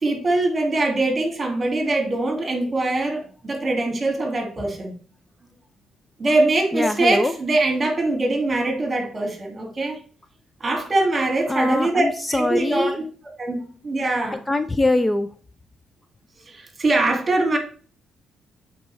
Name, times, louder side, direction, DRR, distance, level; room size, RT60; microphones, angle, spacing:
voice 1, 0.0-4.9 6.2-10.0 10.6-12.9 13.4-14.4 16.5-17.6, right 2 dB, 30° right, 2.0 m, -22 dB
voice 2, 6.7-7.3 11.5-13.0 14.3-15.3, left 2 dB, 15° left, 0.4 m, -22 dB
7.9 x 4.7 x 3.1 m
cardioid pair, 90°, 0 cm